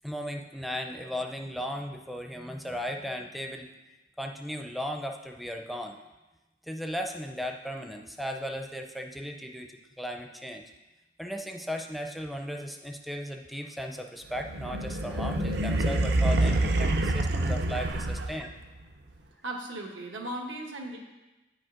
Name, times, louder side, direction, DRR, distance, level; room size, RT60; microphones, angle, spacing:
voice 1, 0.0-3.7 4.2-6.0 6.6-10.6 11.2-18.5, equal, ahead, 3 dB, 0.4 m, -36 dB
sound 1, 14.4-18.6, right 2 dB, 60° right, 0.5 m, -27 dB
voice 2, 19.4-21.0, right 1 dB, 85° right, 1 dB, 1.1 m, -37 dB
9.3 x 5.2 x 3.7 m, 1.1 s
head